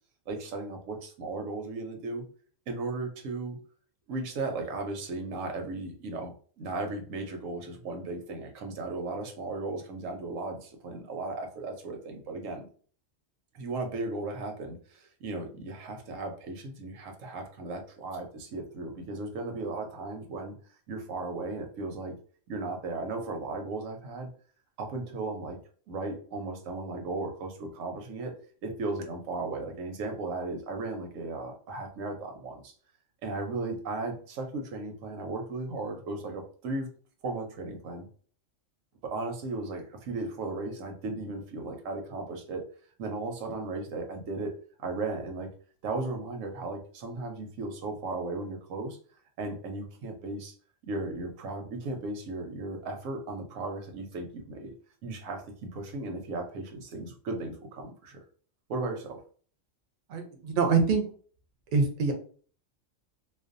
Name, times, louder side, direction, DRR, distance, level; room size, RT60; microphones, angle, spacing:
voice 1, 0.3-2.2 2.7-3.6 4.1-6.3 6.6-12.7 13.5-20.5 20.9-22.1 22.5-24.3 24.8-25.6 25.9-28.3 28.6-32.7 33.2-36.9 37.2-38.1 39.0-42.6 43.0-44.5 44.8-45.5 45.8-49.0 49.4-50.5 50.8-54.7 55.0-58.2 58.7-59.2, right 3 dB, 90° right, 4 dB, 1.0 m, -36 dB
voice 2, 60.1-61.0 61.7-62.1, right 4 dB, 55° right, 4 dB, 0.6 m, -24 dB
2.5 x 2.1 x 2.5 m, 0.43 s
omnidirectional pair, 1.3 m